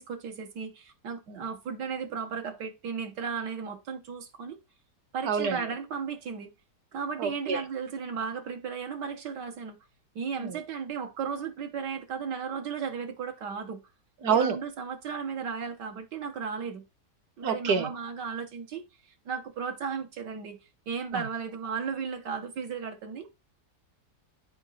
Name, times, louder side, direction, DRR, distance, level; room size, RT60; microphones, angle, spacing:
voice 1, 0.0-4.6 5.1-6.5 6.9-9.8 10.2-13.8 14.3-16.8 17.4-20.6 20.9-23.3, right 6 dB, 85° right, 1.8 m, -35 dB
voice 2, 5.2-5.6 7.2-7.6 10.4-10.6 14.2-14.6 17.4-17.9 21.1-21.2, right 6 dB, 70° right, 1.5 m, -27 dB
7.9 x 4.8 x 4.0 m
omnidirectional pair, 1.8 m